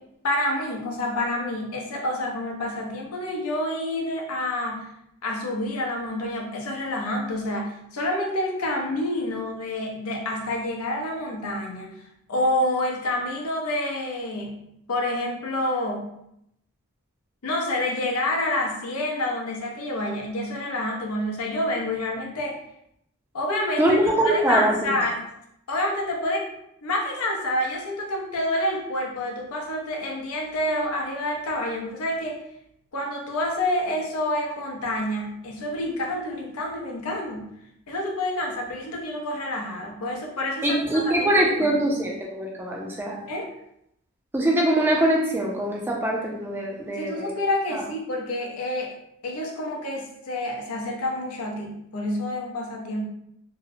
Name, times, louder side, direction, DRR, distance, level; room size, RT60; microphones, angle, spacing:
voice 1, 0.2-4.9 5.2-11.9 12.3-14.5 14.9-16.1 17.4-22.6 23.3-25.2 25.7-26.4 26.8-32.4 32.9-37.5 37.9-41.8 43.3-43.5 46.9-48.9 49.2-53.1, left 1 dB, 85° left, 0 dB, 0.6 m, -28 dB
voice 2, 23.8-24.9 40.6-43.3 44.3-47.3 47.7-47.8, right 1 dB, 10° right, -2 dB, 0.4 m, -23 dB
2.7 x 2.0 x 2.6 m, 0.78 s
head